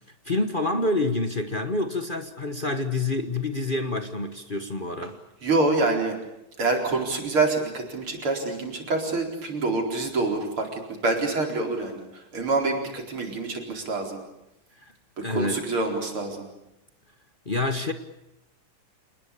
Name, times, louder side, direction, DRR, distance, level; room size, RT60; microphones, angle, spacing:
voice 1, 0.2-5.2 14.8-14.9 15.2-15.6 17.5-17.9, left 2 dB, 30° left, 7 dB, 1.2 m, -27 dB
voice 2, 5.4-6.2 6.6-12.0 12.3-14.2 15.3-16.5, right 3 dB, 90° right, 3 dB, 5.2 m, -26 dB
27.5 x 20.0 x 8.5 m, 0.88 s
omnidirectional pair, 2.3 m